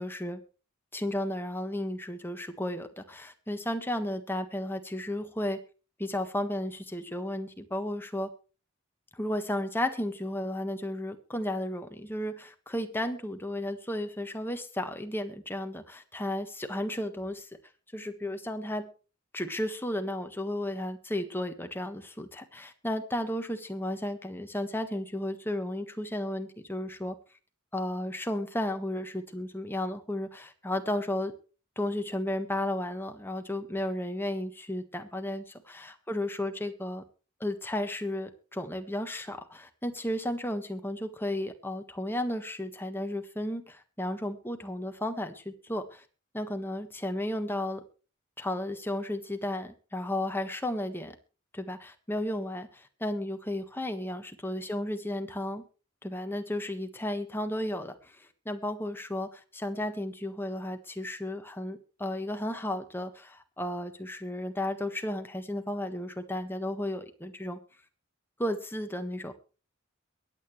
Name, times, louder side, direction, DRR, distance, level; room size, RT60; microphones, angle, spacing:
voice 1, 0.0-0.4 0.9-5.6 6.0-8.3 9.1-17.5 17.9-18.9 19.3-27.1 27.7-31.3 31.8-37.0 37.4-46.0 46.3-47.8 48.4-51.1 51.5-55.6 56.0-58.1 58.4-67.6 68.4-69.3, left 1 dB, 10° left, 7 dB, 1.5 m, -33 dB
22.5 x 9.0 x 3.2 m, 0.35 s
head